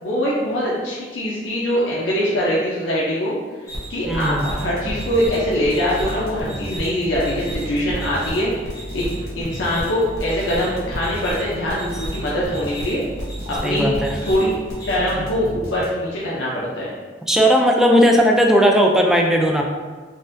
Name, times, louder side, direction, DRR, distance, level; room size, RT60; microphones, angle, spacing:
voice 1, 0.0-3.4 3.9-8.5 8.9-9.0 9.4-13.0 13.5-13.9 14.2-14.5 14.8-16.9, equal, 85° left, -7 dB, 0.6 m, -23 dB
sound 1, 3.7-15.0, equal, 20° left, 0.8 m, -34 dB
sound 2, 4.0-16.2, right 1 dB, 55° left, 1.1 m, -34 dB
voice 2, 4.1-4.4 13.6-14.2 17.3-19.7, equal, 5° right, 1 dB, 0.3 m, -16 dB
3.9 x 2.5 x 2.6 m, 1.4 s
head